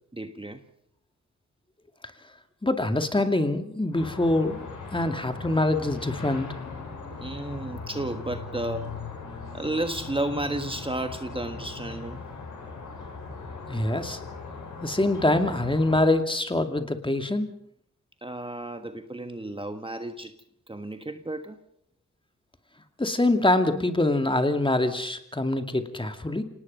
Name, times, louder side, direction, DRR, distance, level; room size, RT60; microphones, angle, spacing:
voice 1, 0.1-0.6 7.2-8.9 9.5-12.2 18.2-20.3 20.7-21.6 23.4-23.5, right 1 dB, 15° right, 7 dB, 1.4 m, -32 dB
voice 2, 2.6-4.6 4.9-6.5 13.7-14.2 14.8-17.5 23.0-26.4, left 2 dB, 15° left, 7 dB, 2.4 m, -24 dB
sound 1, 3.9-16.0, left 4 dB, 85° left, 7.9 m, -39 dB
26.5 x 18.5 x 5.5 m, 0.71 s
cardioid pair, 65°, 30 cm